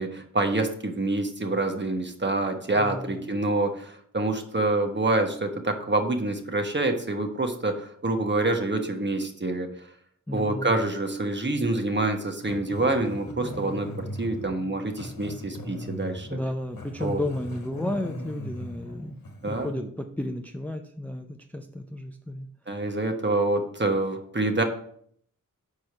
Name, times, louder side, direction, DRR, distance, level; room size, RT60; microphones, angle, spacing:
voice 1, 0.0-9.7 10.3-16.3 17.0-17.2 19.4-19.8 22.7-24.6, right 2 dB, 30° right, 5 dB, 1.1 m, -26 dB
voice 2, 2.8-3.3 10.3-10.7 16.3-19.2 19.4-22.8, left 1 dB, 5° left, 5 dB, 0.5 m, -33 dB
Growling, 12.4-19.7, left 1 dB, 85° left, 1.1 m, -39 dB
5.0 x 4.5 x 5.4 m, 0.63 s
cardioid pair, 50°, 34 cm